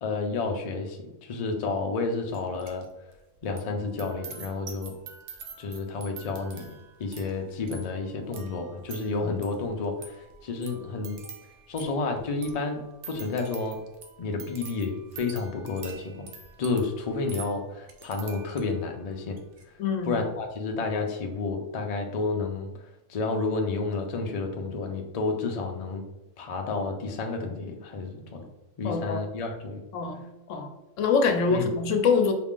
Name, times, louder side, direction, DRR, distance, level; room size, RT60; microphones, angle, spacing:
voice 1, 0.0-2.9 3.4-4.9 5.6-6.7 7.0-11.2 11.7-13.8 14.2-16.3 16.6-19.4 20.0-22.7 23.1-26.0 26.4-28.5 28.8-29.8 31.5-31.7, left 3 dB, 55° left, 3 dB, 0.4 m, -30 dB
sound 1, 2.3-2.9 3.1-18.9 19.3-19.6, right 6 dB, 70° right, 1.0 m, -46 dB
voice 2, 19.8-20.1 28.8-29.2 29.9-30.7 31.0-32.3, left 5 dB, 75° left, 6 dB, 0.9 m, -25 dB
4.8 x 2.4 x 3.6 m, 0.95 s
omnidirectional pair, 1.3 m